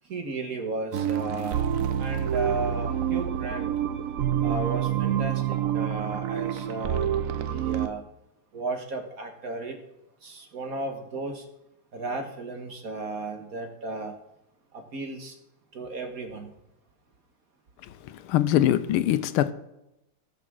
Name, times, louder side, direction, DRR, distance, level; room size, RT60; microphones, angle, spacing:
voice 1, 0.0-3.7 4.4-7.1 7.5-8.0 8.5-9.8 10.2-11.4 11.9-14.1 14.7-15.4 15.7-16.5, right 2 dB, 45° right, 1.7 m, -34 dB
sound 1, 0.9-7.9, right 10 dB, 75° right, 0.7 m, -27 dB
voice 2, 18.0-19.5, left 12 dB, 85° left, 1.5 m, -23 dB
16.5 x 6.1 x 6.3 m
omnidirectional pair, 2.3 m